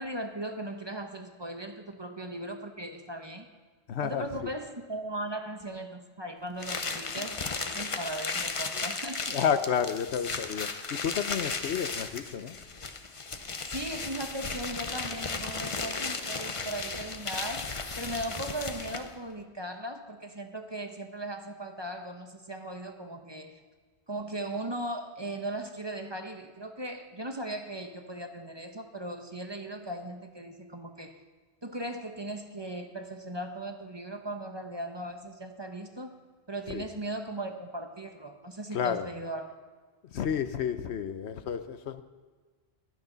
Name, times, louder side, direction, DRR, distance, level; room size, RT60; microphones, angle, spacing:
voice 1, 0.0-3.5 4.0-9.4 13.6-23.6 24.1-31.2 31.6-36.2 36.5-39.5, right 1 dB, 25° right, 5 dB, 0.9 m, -38 dB
voice 2, 3.9-4.3 9.3-10.7 11.0-12.6 36.7-36.9 38.7-39.1 40.1-42.0, left 8 dB, 80° left, 10 dB, 1.0 m, -30 dB
sound 1, 6.6-19.2, left 4 dB, 35° left, 0.7 m, -35 dB
16.0 x 12.0 x 4.0 m, 1.4 s
omnidirectional pair, 1.1 m